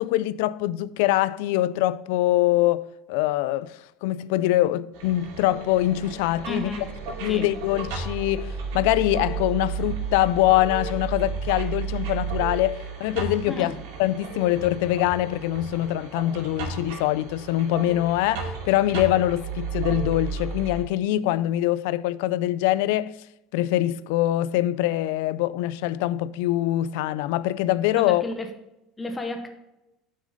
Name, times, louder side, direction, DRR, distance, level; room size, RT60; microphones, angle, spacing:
voice 1, 0.0-13.7 14.0-23.2 23.5-28.2, left 14 dB, 80° left, 0.3 m, -24 dB
sound 1, 4.9-20.8, right 5 dB, 85° right, 2.4 m, -33 dB
voice 2, 6.4-6.9 7.3-7.5 13.5-13.8 28.0-28.5 29.0-29.5, left 1 dB, 10° left, 0.7 m, -32 dB
7.4 x 6.3 x 4.0 m
cardioid pair, 165°, 0 cm